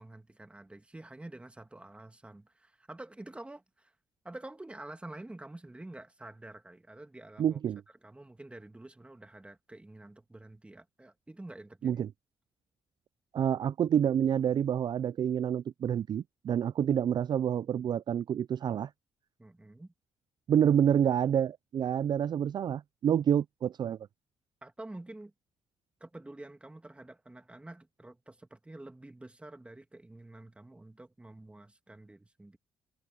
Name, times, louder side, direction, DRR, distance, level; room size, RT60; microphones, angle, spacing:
voice 1, 0.0-3.9 4.2-7.6 8.0-12.0 19.4-19.9 24.6-25.3 26.0-32.6, right 2 dB, 10° right, 2.1 m, -48 dB
voice 2, 7.4-7.8 11.8-12.1 13.3-18.9 20.5-24.0, right 9 dB, 50° right, 0.4 m, -28 dB
cardioid pair, 90°, 9 cm